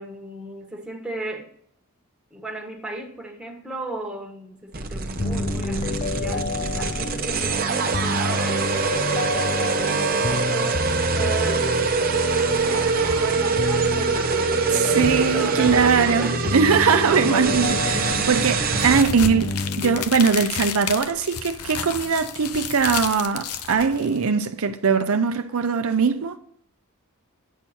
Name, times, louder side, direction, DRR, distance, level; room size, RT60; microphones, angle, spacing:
voice 1, 0.0-1.5 2.3-12.0 12.7-16.7, right 2 dB, 5° right, 1.3 m, -36 dB
sound 1, 4.7-19.0, right 5 dB, 40° right, 0.8 m, -24 dB
sound 2, 5.2-20.0, left 3 dB, 30° left, 0.4 m, -29 dB
voice 2, 14.7-26.4, right 5 dB, 70° right, 0.6 m, -21 dB
sound 3, 18.8-24.3, left 8 dB, 80° left, 0.7 m, -31 dB
9.2 x 6.3 x 4.3 m
head